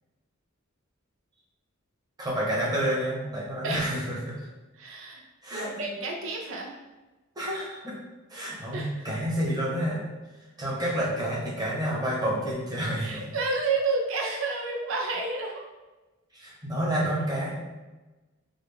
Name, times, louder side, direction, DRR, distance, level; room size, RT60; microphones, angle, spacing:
voice 1, 2.2-4.3 5.4-5.7 7.4-7.9 8.3-10.1 10.6-13.2 16.3-17.5, right 1 dB, 20° right, -6 dB, 1.1 m, -29 dB
voice 2, 4.8-5.2 5.5-6.7 8.7-9.1 13.0-15.7, right 3 dB, 65° right, 0 dB, 0.6 m, -30 dB
3.9 x 2.3 x 3.4 m, 1.1 s
head